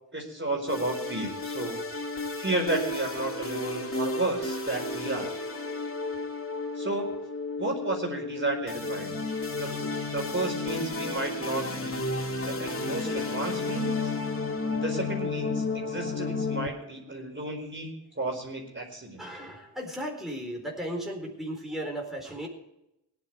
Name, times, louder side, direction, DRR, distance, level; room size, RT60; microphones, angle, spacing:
voice 1, 0.1-1.8 2.4-5.3 6.7-7.1 7.6-9.2 9.5-9.8 10.1-12.1 12.4-14.1 14.7-19.3, right 2 dB, 25° right, 1 dB, 4.5 m, -32 dB
sound 1, 0.7-16.7, left 3 dB, 25° left, 2.1 m, -32 dB
voice 2, 9.6-10.1 19.2-22.5, equal, ahead, -1 dB, 4.2 m, -36 dB
17.5 x 10.5 x 4.7 m, 0.85 s
supercardioid pair, 55°, 47 cm